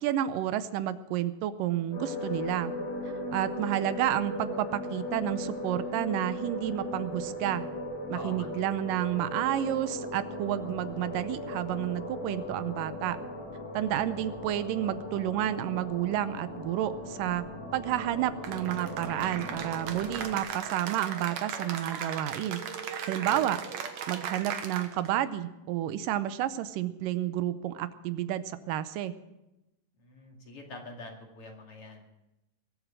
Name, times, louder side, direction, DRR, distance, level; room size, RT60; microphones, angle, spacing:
voice 1, 0.0-2.7 3.3-7.6 8.1-13.2 13.7-17.5 17.7-22.6 23.1-23.6 24.1-29.1, right 12 dB, 85° right, 13 dB, 2.4 m, -30 dB
sound 1, 1.9-20.4, left 1 dB, 65° left, 7.0 m, -38 dB
voice 2, 8.1-8.5 23.1-23.4 30.0-32.0, left 2 dB, 45° left, 2 dB, 3.0 m, -45 dB
Cheering / Applause, 18.4-25.2, right 7 dB, 65° right, 2.3 m, -37 dB
21.5 x 8.3 x 7.5 m, 0.96 s
omnidirectional pair, 3.8 m